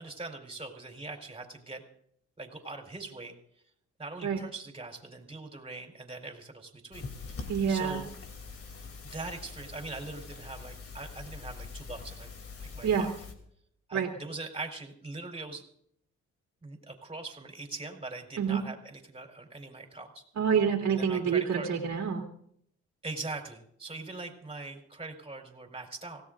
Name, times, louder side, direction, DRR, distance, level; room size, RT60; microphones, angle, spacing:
voice 1, 0.0-1.8 2.4-3.3 4.0-8.1 9.0-12.3 12.6-13.1 13.9-15.6 16.6-20.2 20.9-21.7 23.0-26.2, right 3 dB, 20° right, 2 dB, 4.2 m, -42 dB
sound 1, 6.9-13.3, left 4 dB, 50° left, 3.1 m, -44 dB
voice 2, 7.5-8.0 12.8-13.1 13.9-14.1 18.4-18.6 20.4-22.2, right 7 dB, 65° right, 0 dB, 2.9 m, -27 dB
26.0 x 17.0 x 2.6 m, 0.67 s
cardioid pair, 90°, 30 cm